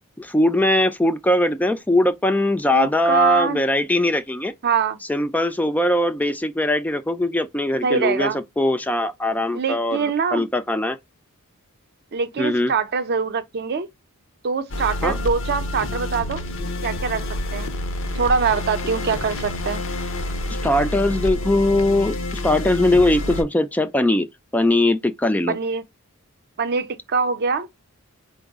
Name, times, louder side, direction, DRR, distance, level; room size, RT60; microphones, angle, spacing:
voice 1, 0.2-4.5 5.1-11.0 12.4-12.7 15.0-15.2 20.5-22.2 22.4-24.3 24.5-25.6, left 1 dB, 5° left, 0.3 m, -20 dB
voice 2, 2.7-3.6 4.6-5.0 7.8-8.4 9.5-10.5 12.1-13.9 14.4-16.4 16.8-17.2 17.5-17.7 18.1-19.8 25.5-25.8 26.6-27.7, right 5 dB, 45° right, 0.5 m, -23 dB
sound 1, 14.7-23.4, left 1 dB, 60° left, 0.7 m, -28 dB
4.5 x 2.0 x 3.4 m
head